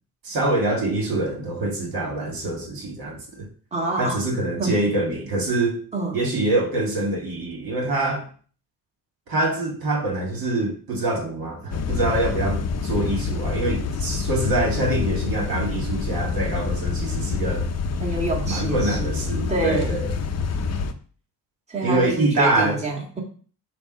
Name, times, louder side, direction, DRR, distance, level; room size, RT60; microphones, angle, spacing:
voice 1, 0.2-3.5 4.0-5.8 6.1-8.3 9.3-17.7 18.5-20.1 21.8-22.8, right 2 dB, 60° right, 1.9 m, -25 dB
voice 2, 3.7-4.2 4.6-4.8 5.9-6.2 18.0-19.1 19.5-20.0 21.7-23.2, right 2 dB, 15° right, 1.8 m, -27 dB
sound 1, 11.7-20.9, left 5 dB, 40° left, 0.7 m, -27 dB
6.8 x 2.5 x 5.4 m
cardioid pair, 90°, 40 cm